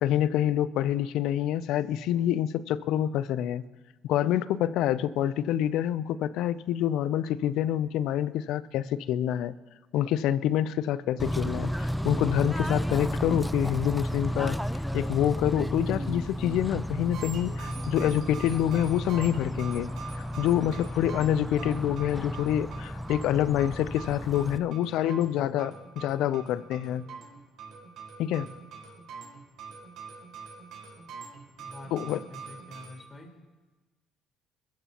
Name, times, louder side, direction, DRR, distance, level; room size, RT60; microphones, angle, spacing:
voice 1, 0.0-3.6 4.0-9.6 9.9-14.6 14.9-19.9 20.4-27.0 28.2-28.5 31.9-32.2, left 11 dB, 75° left, 17 dB, 0.5 m, -27 dB
Bird / Train, 11.2-24.6, equal, ahead, 0.5 m, -32 dB
sound 1, 17.1-32.9, right 5 dB, 70° right, 4.7 m, -45 dB
voice 2, 31.6-33.4, left 1 dB, 25° left, 1 dB, 4.3 m, -47 dB
22.5 x 14.0 x 3.0 m, 1.3 s
supercardioid pair, 80°, 0 cm